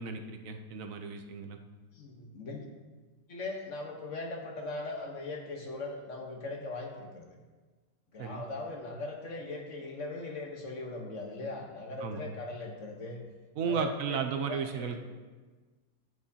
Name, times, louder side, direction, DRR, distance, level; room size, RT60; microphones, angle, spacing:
voice 1, 0.0-1.6 8.2-8.4 12.0-12.3 13.6-15.0, right 6 dB, 75° right, 5 dB, 0.7 m, -34 dB
voice 2, 1.9-2.6 3.3-7.3 8.1-13.2 13.6-15.0, left 2 dB, 45° left, 1 dB, 1.3 m, -40 dB
10.5 x 9.0 x 2.8 m, 1.3 s
omnidirectional pair, 2.1 m